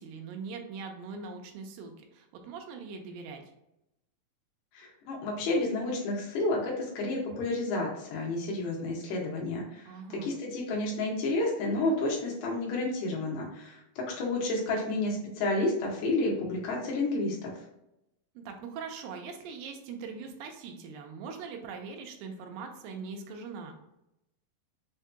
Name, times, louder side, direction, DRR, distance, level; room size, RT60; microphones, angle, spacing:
voice 1, 0.0-3.4 9.9-10.3 18.4-23.8, right 5 dB, 80° right, 3 dB, 2.3 m, -41 dB
voice 2, 4.7-9.9 10.2-17.5, left 2 dB, 85° left, -3 dB, 3.2 m, -30 dB
6.5 x 2.7 x 2.2 m, 0.87 s
omnidirectional pair, 4.4 m